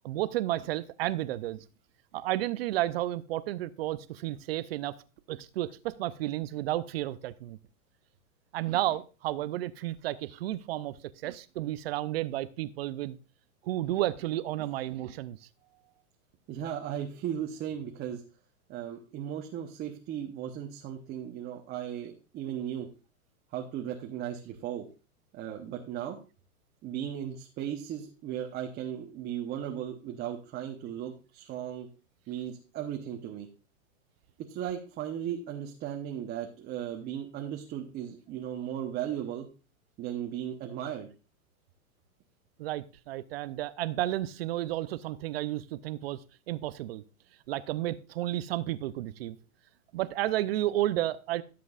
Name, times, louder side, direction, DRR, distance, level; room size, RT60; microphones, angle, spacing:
voice 1, 0.0-1.6 2.1-4.9 5.3-7.6 8.5-11.0 11.2-13.2 13.6-15.4 42.6-47.0 47.5-49.4 49.9-51.4, right 14 dB, 45° right, 15 dB, 0.6 m, -32 dB
voice 2, 16.5-18.2 18.7-22.9 23.5-24.9 25.3-26.2 26.8-31.9 32.3-33.5 34.4-39.5 40.0-41.1, right 10 dB, 20° right, 2 dB, 1.0 m, -36 dB
15.0 x 7.7 x 2.5 m, 0.33 s
hypercardioid pair, 145°, 44 cm